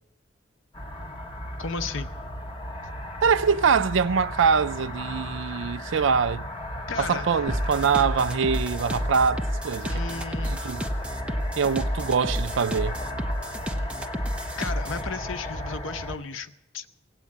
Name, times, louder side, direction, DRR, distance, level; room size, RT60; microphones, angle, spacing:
sound 1, 0.7-16.2, left 1 dB, 30° left, 1.4 m, -35 dB
voice 1, 1.6-2.1 6.9-7.3 9.9-10.6 14.6-16.9, left 4 dB, 85° left, 0.7 m, -34 dB
voice 2, 3.2-6.5 7.0-10.0 10.5-10.9 11.6-13.0, right 6 dB, 70° right, 0.4 m, -24 dB
sound 2, 7.5-15.1, equal, 5° right, 0.7 m, -30 dB
17.5 x 8.3 x 8.5 m
head